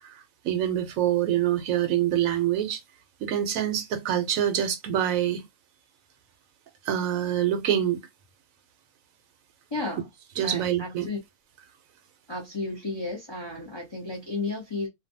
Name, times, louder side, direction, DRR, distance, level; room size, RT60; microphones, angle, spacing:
voice 1, 0.4-2.8 3.2-5.4 6.9-8.0 10.4-11.1, right 11 dB, 75° right, 1.0 m, -25 dB
voice 2, 9.7-10.1 10.4-11.2 12.3-14.9, left 3 dB, 30° left, 0.5 m, -33 dB
2.5 x 2.2 x 2.6 m
omnidirectional pair, 1.5 m